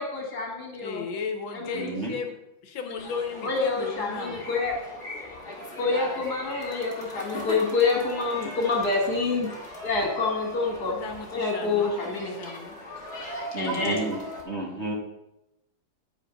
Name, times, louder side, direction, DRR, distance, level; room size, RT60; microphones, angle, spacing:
voice 1, 0.0-1.1 1.5-1.9 3.4-4.8 5.8-9.5 9.8-10.9 11.3-12.3 13.5-14.0, left 3 dB, 55° left, -1 dB, 2.6 m, -27 dB
voice 2, 0.8-2.3 2.6-4.4 10.8-12.8, left 5 dB, 80° left, 5 dB, 1.6 m, -36 dB
voice 3, 1.7-2.1 13.5-14.9, right 2 dB, 35° right, -4 dB, 1.7 m, -32 dB
sound 1, 3.0-14.4, left 1 dB, 30° left, 2.3 m, -39 dB
9.7 x 5.0 x 5.4 m, 0.92 s
omnidirectional pair, 2.1 m